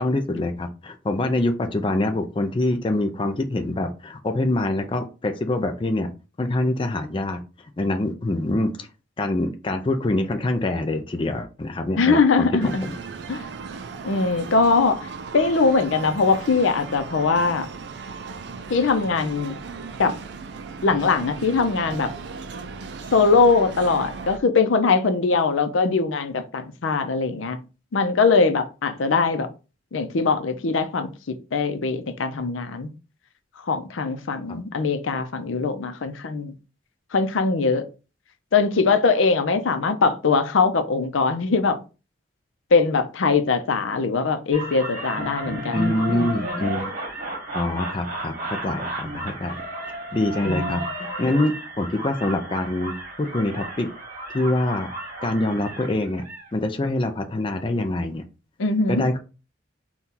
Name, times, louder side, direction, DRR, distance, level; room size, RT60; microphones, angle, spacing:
voice 1, 0.0-6.1 6.4-8.9 9.2-12.9 45.7-46.9 47.5-49.6 50.1-53.9 54.3-54.9 55.2-56.2 56.5-58.2 58.9-59.2, left 2 dB, 25° left, 0.4 m, -25 dB
voice 2, 12.0-12.9 13.3-13.4 14.0-15.1 15.3-17.7 18.7-19.6 20.0-20.2 20.8-22.1 23.1-27.6 27.9-29.5 29.9-32.9 33.7-36.5 37.1-37.9 38.5-41.8 42.7-45.9 50.4-50.8 58.6-59.1, left 4 dB, 85° left, 0.6 m, -21 dB
sound 1, 12.6-24.4, right 5 dB, 60° right, 0.4 m, -37 dB
sound 2, 44.5-56.5, right 1 dB, 40° right, 1.1 m, -33 dB
4.2 x 2.3 x 3.7 m
head